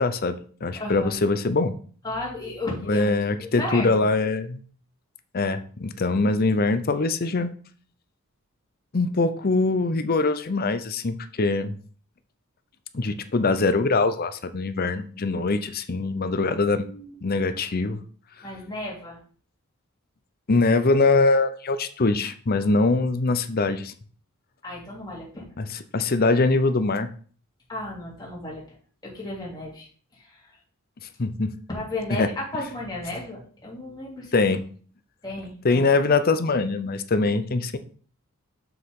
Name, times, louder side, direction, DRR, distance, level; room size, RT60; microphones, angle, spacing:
voice 1, 0.0-1.7 2.9-4.6 5.3-7.5 8.9-11.8 12.9-16.9 17.2-18.0 20.5-23.9 25.6-25.7 25.9-27.1 31.2-31.5 32.2-32.3 34.3-34.6 35.6-37.8, left 3 dB, 45° left, 11 dB, 0.6 m, -23 dB
voice 2, 0.8-1.1 2.0-4.1 16.3-17.1 18.4-19.2 22.6-22.7 24.6-25.4 27.7-28.6 29.0-29.9 30.1-30.6 31.7-34.3 35.2-35.9, left 2 dB, 20° left, -4 dB, 2.9 m, -34 dB
7.1 x 6.5 x 3.7 m, 0.44 s
head